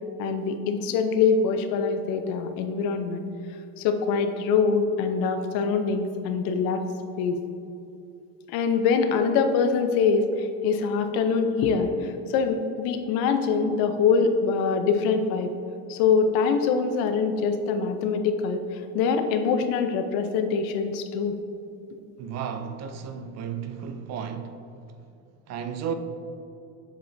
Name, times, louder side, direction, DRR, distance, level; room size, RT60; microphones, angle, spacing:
voice 1, 0.2-3.2 3.8-6.8 7.2-7.4 8.5-15.5 15.9-21.3, left 5 dB, 70° left, 0.7 m, -24 dB
voice 2, 22.2-24.6 25.5-25.9, right 7 dB, 45° right, 0.5 m, -33 dB
7.5 x 7.0 x 2.7 m
supercardioid pair, 120°, 37 cm